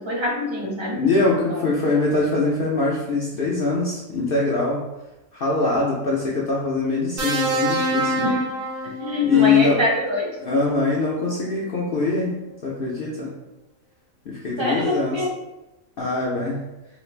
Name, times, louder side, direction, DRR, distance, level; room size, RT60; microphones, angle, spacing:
voice 1, 0.0-1.6 8.2-8.5 9.0-10.3 14.6-15.3, left 1 dB, 30° right, -3 dB, 0.5 m, -25 dB
voice 2, 0.9-4.8 5.3-8.1 9.2-9.8 10.4-12.3 12.6-13.3 14.3-15.2 16.0-16.6, left 3 dB, 60° left, -4 dB, 0.6 m, -22 dB
sound 1, 7.2-9.4 10.8-11.0, right 2 dB, 75° right, 1.4 m, -25 dB
3.1 x 2.4 x 3.1 m, 1.0 s
omnidirectional pair, 1.4 m